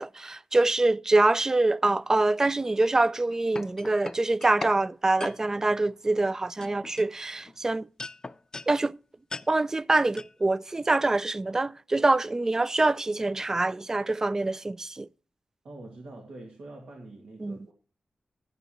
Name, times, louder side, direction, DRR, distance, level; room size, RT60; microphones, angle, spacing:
voice 1, 0.0-7.9 8.7-9.0 9.5-15.1 17.4-17.6, right 2 dB, 25° right, 0.4 m, -25 dB
sound 1, 3.1-4.8 5.2-5.4 6.1-6.3 6.6-7.6 8.0-8.7 9.3-9.5 10.2-10.3, left 3 dB, 30° left, 0.5 m, -38 dB
voice 2, 15.6-17.7, right 2 dB, 90° right, 2.1 m, -45 dB
12.0 x 9.2 x 3.0 m
wide cardioid pair, 95°, 2 cm